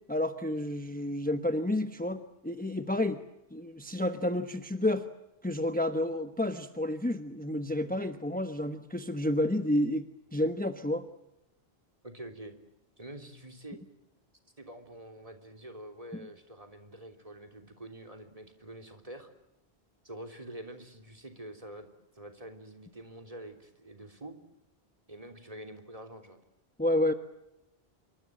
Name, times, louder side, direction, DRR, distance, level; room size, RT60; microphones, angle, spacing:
voice 1, 0.1-3.2 3.5-5.1 5.4-11.0 26.8-27.1, left 1 dB, 10° left, 8 dB, 1.1 m, -30 dB
voice 2, 12.0-12.5 13.0-13.8 14.6-19.3 20.0-21.9 22.1-24.3 25.1-26.4, right 1 dB, 35° right, 5 dB, 3.5 m, -46 dB
27.0 x 24.5 x 7.6 m, 0.89 s
omnidirectional pair, 1.1 m